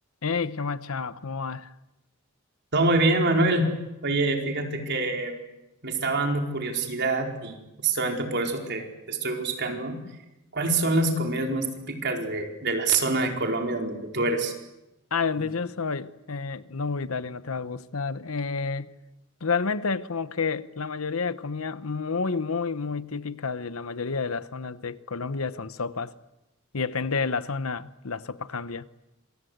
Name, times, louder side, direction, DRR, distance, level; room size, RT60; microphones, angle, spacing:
voice 1, 0.2-1.7 15.1-18.9 19.4-26.1 26.7-28.8, left 4 dB, 80° left, 1.0 m, -30 dB
voice 2, 2.7-3.7 4.0-5.3 5.8-7.6 7.8-10.0 10.5-14.5, right 2 dB, 55° right, 4.4 m, -25 dB
27.0 x 24.0 x 8.0 m
head